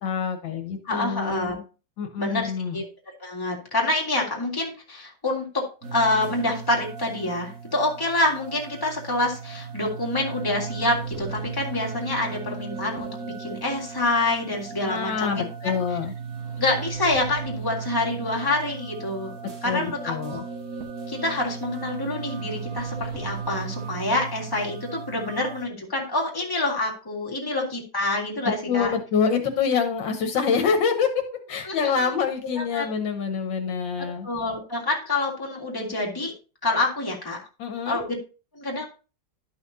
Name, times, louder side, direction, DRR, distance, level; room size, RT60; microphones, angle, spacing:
voice 1, 0.0-1.6 2.0-2.8 14.9-16.1 19.6-20.4 28.4-31.2 31.5-34.3 37.6-38.0, left 6 dB, 75° left, 5 dB, 1.7 m, -26 dB
voice 2, 0.8-1.6 2.2-2.8 3.2-5.6 5.9-15.7 16.6-19.4 19.6-20.4 21.1-28.9 31.7-32.1 32.6-32.8 34.2-36.3 36.6-37.4 37.9-38.1 38.6-38.9, left 2 dB, 10° left, -2 dB, 2.0 m, -27 dB
sound 1, 5.8-25.6, right 6 dB, 45° right, 1.7 m, -36 dB
12.0 x 5.7 x 2.7 m, 0.33 s
omnidirectional pair, 2.1 m